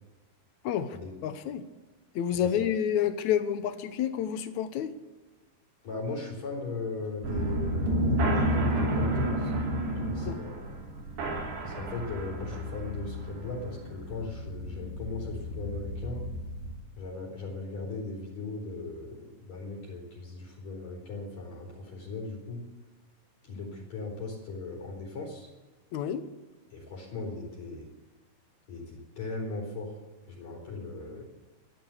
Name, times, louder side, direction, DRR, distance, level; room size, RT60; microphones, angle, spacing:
voice 1, 0.6-1.0 1.2-1.6 2.1-4.9 10.2-10.4 25.9-26.2, left 9 dB, 75° left, 10 dB, 1.7 m, -29 dB
voice 2, 2.4-2.8 5.8-9.5 10.0-10.7 11.6-16.2 16.9-22.6 23.4-25.5 26.7-27.9 28.7-30.0 30.3-31.2, left 3 dB, 45° left, -3 dB, 4.7 m, -38 dB
sound 1, 7.2-16.8, right 1 dB, 90° right, 4.9 m, -31 dB
14.0 x 10.5 x 8.2 m, 1.2 s
omnidirectional pair, 4.5 m